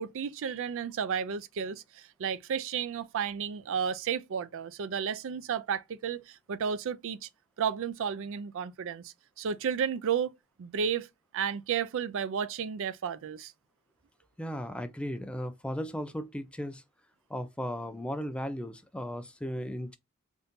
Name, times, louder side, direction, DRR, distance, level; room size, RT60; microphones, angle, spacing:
voice 1, 0.0-7.3 7.6-10.3 10.6-11.1 11.3-13.5, right 7 dB, 60° right, 0.4 m, -32 dB
voice 2, 14.4-16.8 17.3-20.0, equal, 5° left, 0.3 m, -36 dB
3.6 x 2.6 x 2.6 m
head